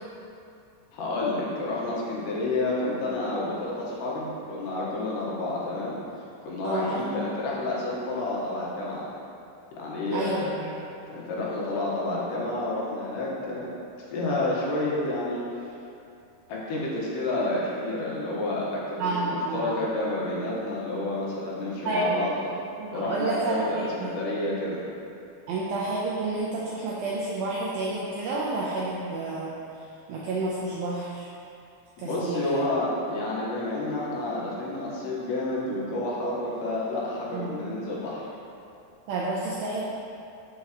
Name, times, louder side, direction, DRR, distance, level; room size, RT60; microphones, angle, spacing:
voice 1, 0.9-6.0 6.4-9.1 9.8-10.5 11.1-13.7 14.1-15.4 16.5-22.4 22.9-24.8 32.0-38.3, left 2 dB, 75° left, -5 dB, 3.5 m, -29 dB
voice 2, 6.6-7.3 10.1-10.7 19.0-19.8 21.9-22.1 22.8-24.1 25.5-29.5 30.1-31.3 32.0-32.6 37.3-37.6 39.1-39.8, right 2 dB, 80° right, -6 dB, 2.1 m, -30 dB
13.5 x 6.2 x 3.1 m, 2.6 s
omnidirectional pair, 5.2 m